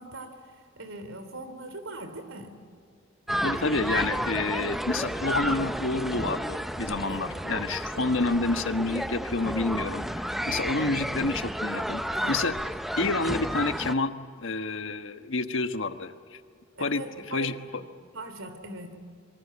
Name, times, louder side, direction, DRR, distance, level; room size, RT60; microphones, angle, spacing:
voice 1, 0.0-2.6 7.1-7.3 7.9-8.2 12.1-12.4 16.7-17.5 18.1-19.0, right 2 dB, 70° right, 9 dB, 3.4 m, -41 dB
sound 1, 3.3-13.9, equal, ahead, 0.6 m, -31 dB
voice 2, 3.4-12.5 13.0-14.1 14.4-16.1 16.8-17.0 17.3-17.5, left 3 dB, 65° left, 9 dB, 1.3 m, -29 dB
26.5 x 24.0 x 8.6 m, 2.2 s
head